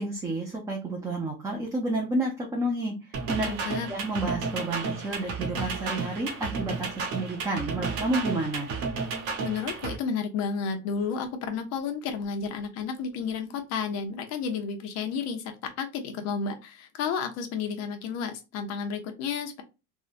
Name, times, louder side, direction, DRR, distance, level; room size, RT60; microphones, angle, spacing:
voice 1, 0.0-3.5 3.9-8.7, right 2 dB, 10° right, 0 dB, 0.4 m, -30 dB
sound 1, 3.1-10.0, right 4 dB, 60° right, 0.9 m, -32 dB
voice 2, 3.4-3.9 9.4-15.4 15.8-19.6, left 6 dB, 50° left, 6 dB, 0.6 m, -32 dB
3.6 x 2.1 x 2.4 m, 0.28 s
cardioid pair, 155°, 35 cm